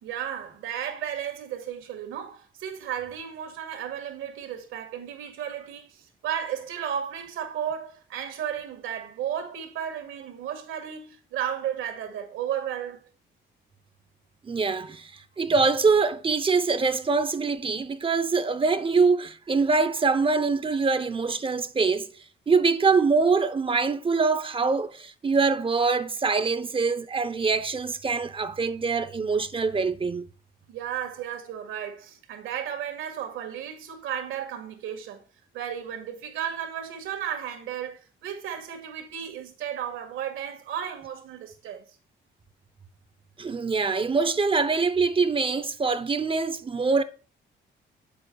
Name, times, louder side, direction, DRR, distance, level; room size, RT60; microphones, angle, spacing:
voice 1, 0.0-13.1 30.7-35.2 35.5-41.9, right 9 dB, 85° right, 1.7 m, -34 dB
voice 2, 14.4-15.1 15.4-22.1 22.5-30.3 43.4-47.0, right 4 dB, 25° right, 0.7 m, -24 dB
9.5 x 6.9 x 2.3 m
cardioid pair, 90°, 20 cm